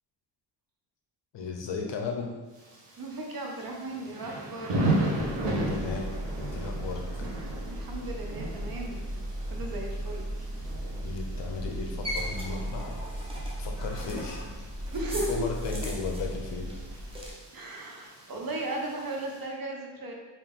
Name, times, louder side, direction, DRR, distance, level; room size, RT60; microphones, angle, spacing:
voice 1, 1.3-2.3 5.4-7.2 11.0-13.0 13.6-14.4 15.1-16.7, left 5 dB, 70° left, 1 dB, 0.7 m, -36 dB
Thunder / Rain, 2.5-19.4, right 1 dB, 65° right, 1.1 m, -36 dB
voice 2, 3.0-4.8 7.6-9.0 9.5-10.3 14.9-15.5 15.8-15.9 17.5-20.1, right 1 dB, 50° right, 0 dB, 0.7 m, -36 dB
sound 1, 5.2-17.3, right 1 dB, 15° right, 0.5 m, -36 dB
4.0 x 2.5 x 3.5 m, 1.2 s
wide cardioid pair, 170°, 46 cm